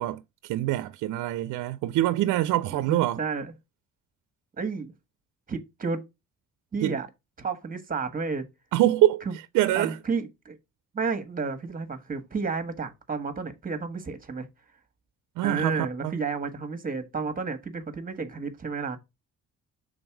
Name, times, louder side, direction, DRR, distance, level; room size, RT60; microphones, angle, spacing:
voice 1, 0.0-3.2 6.8-7.0 8.7-9.2 9.5-10.0 15.4-16.2, right 14 dB, 85° right, 0.5 m, -25 dB
voice 2, 2.7-3.5 4.6-4.9 5.5-6.0 6.7-7.1 7.4-8.4 9.3-9.4 9.7-10.6 10.9-14.5 15.4-19.0, right 4 dB, 30° right, 1.3 m, -31 dB
5.2 x 3.9 x 4.6 m
cardioid pair, 90°, 30 cm